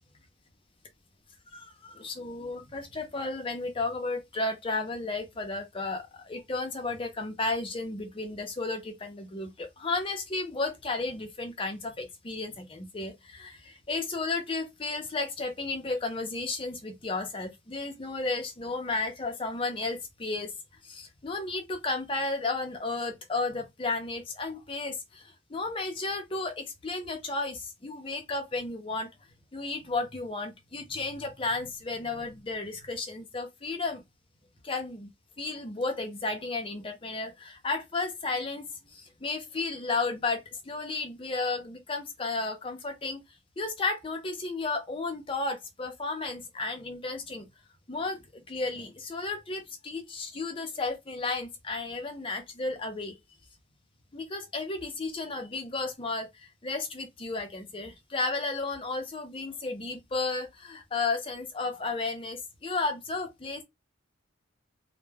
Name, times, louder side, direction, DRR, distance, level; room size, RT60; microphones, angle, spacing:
voice 1, 1.5-20.5 20.8-29.1 29.5-34.0 34.6-35.1 35.4-43.2 43.6-47.5 47.9-53.2 54.1-63.6, left 3 dB, 25° left, 0.5 m, -33 dB
2.1 x 2.1 x 3.2 m
head